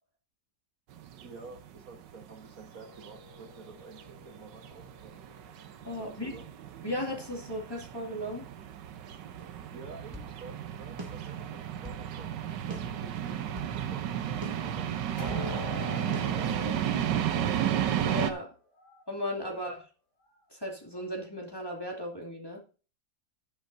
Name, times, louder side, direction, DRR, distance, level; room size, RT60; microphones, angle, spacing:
sound 1, 0.9-18.3, right 10 dB, 80° right, 1.5 m, -33 dB
voice 1, 1.2-5.4 5.9-6.5 9.7-17.6 19.4-19.7, right 4 dB, 55° right, 4 dB, 1.7 m, -50 dB
sound 2, 2.7-5.8 15.2-19.1 19.5-19.7 20.3-20.4, left 3 dB, 70° left, 3.0 m, -45 dB
voice 2, 5.8-6.3 6.8-8.5 18.1-18.5 19.1-19.8 20.5-22.6, left 1 dB, 15° left, -1 dB, 2.4 m, -36 dB
sound 3, 9.4-10.3 11.0-12.1 12.7-13.8 14.4-15.5 16.1-16.3, right 1 dB, 15° right, 1.5 m, -44 dB
12.0 x 10.5 x 2.7 m, 0.35 s
omnidirectional pair, 1.9 m